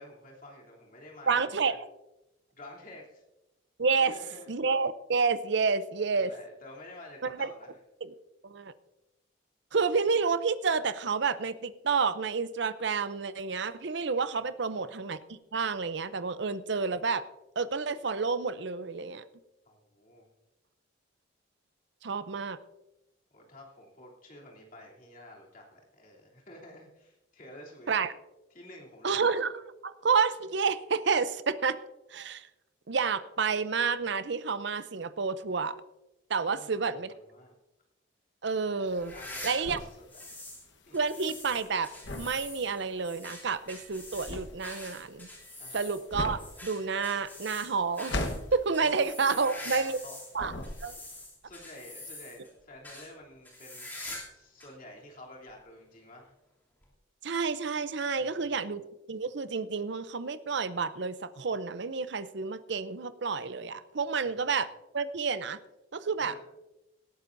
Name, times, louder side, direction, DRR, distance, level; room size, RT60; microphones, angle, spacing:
voice 1, 0.0-1.7 2.5-3.2 4.0-4.5 6.1-7.7 14.4-14.9 19.6-20.2 23.3-27.9 28.5-29.2 36.5-37.5 39.1-40.0 40.3-40.4 40.9-41.0 45.6-45.9 48.8-50.2 51.4-53.9 54.3-56.3 58.1-58.6 64.2-64.3 66.2-66.4, left 1 dB, 40° left, -2 dB, 3.1 m, -50 dB
voice 2, 1.3-1.7 3.8-4.1 4.5-6.3 7.2-7.5 8.4-8.7 9.7-17.2 17.6-19.2 22.0-22.6 27.9-28.1 29.0-29.5 29.8-31.8 32.1-32.5 32.9-35.8 36.3-37.1 38.4-39.1 39.4-39.8 40.9-45.3 45.7-48.2 48.5-50.0 50.3-50.5 50.8-51.0 57.2-58.8 59.1-64.7 64.9-65.6 65.9-66.3, right 5 dB, 60° right, 13 dB, 0.6 m, -29 dB
sound 1, 38.9-50.1 50.3-51.2, left 1 dB, 60° left, 1.2 m, -39 dB
sound 2, 39.0-40.6 40.9-50.3 50.6-52.5 52.8-53.1 53.4-54.3 54.6-54.7 55.5-55.6 56.8-56.9, left 1 dB, 10° left, 2.8 m, -44 dB
18.0 x 13.0 x 2.6 m, 0.96 s
head